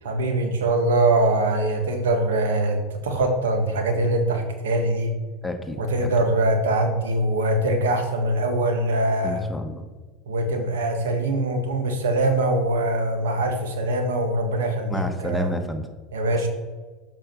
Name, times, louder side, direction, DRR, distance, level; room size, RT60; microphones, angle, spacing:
voice 1, 0.0-5.1 5.8-9.4 10.3-15.5 16.1-16.5, right 2 dB, 90° right, 5 dB, 1.4 m, -23 dB
voice 2, 5.4-5.8 9.2-9.8 14.9-15.9, left 1 dB, 10° left, 6 dB, 1.1 m, -30 dB
7.6 x 4.9 x 6.0 m, 1.4 s
hypercardioid pair, 95°, 0 cm